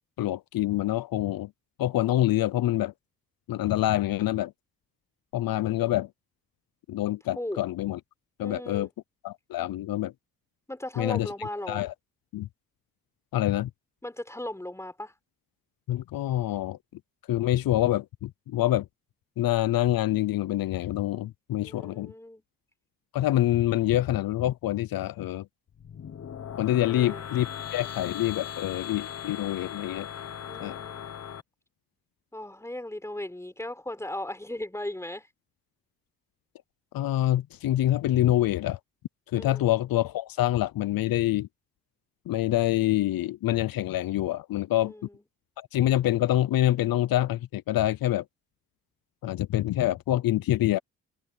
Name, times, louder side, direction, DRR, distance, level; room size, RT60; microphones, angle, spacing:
voice 1, 0.2-1.5 1.8-2.9 3.5-4.5 5.3-6.1 6.9-8.0 8.4-8.9 9.2-10.1 11.0-11.9 12.3-12.5 13.3-13.7 15.9-16.8 17.3-18.9 19.4-22.1 23.1-25.5 26.6-30.1 30.6-30.8 36.9-38.8 39.3-41.5 42.3-44.9 45.6-48.2 49.2-50.8, left 14 dB, 85° left, 0.6 m, -26 dB
voice 2, 8.4-8.9 10.7-11.9 14.0-15.1 21.6-22.4 26.8-27.2 30.5-31.0 32.3-35.3 39.3-39.7 44.7-45.2, left 1 dB, 10° left, 4.1 m, -37 dB
sound 1, 25.7-31.4, left 9 dB, 45° left, 1.1 m, -38 dB
cardioid pair, 115°, 34 cm